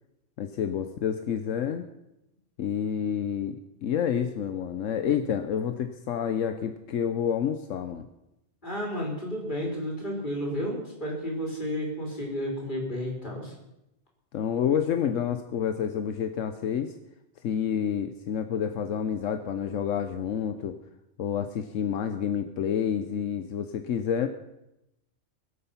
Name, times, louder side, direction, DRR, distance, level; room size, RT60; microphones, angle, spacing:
voice 1, 0.4-1.8 2.6-8.1 14.3-16.9 17.4-20.8 21.2-24.3, left 8 dB, 80° left, 8 dB, 1.1 m, -29 dB
voice 2, 8.6-13.5, equal, 40° left, -2 dB, 4.3 m, -32 dB
22.0 x 8.3 x 5.6 m, 0.89 s
omnidirectional pair, 1.3 m